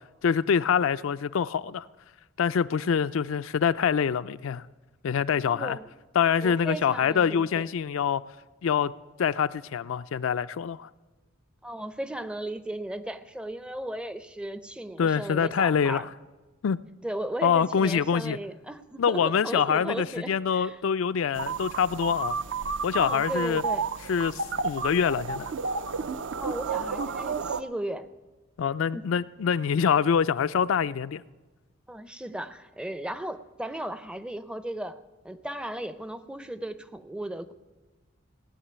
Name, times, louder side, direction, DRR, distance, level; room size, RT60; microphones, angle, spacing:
voice 1, 0.2-1.9 2.4-4.6 5.0-5.8 6.1-8.2 8.6-8.9 9.2-10.9 15.0-16.1 16.6-16.8 17.4-18.4 19.0-22.4 22.8-23.6 24.1-25.5 28.6-31.2, left 7 dB, 65° left, 0.4 m, -25 dB
voice 2, 5.5-5.9 6.4-7.7 11.6-16.1 17.0-20.8 22.9-23.9 26.4-28.1 28.9-29.0 31.9-35.0 35.2-37.5, right 1 dB, 5° right, 0.5 m, -36 dB
sound 1, 21.3-27.6, right 5 dB, 60° right, 0.5 m, -31 dB
17.0 x 7.3 x 10.0 m
head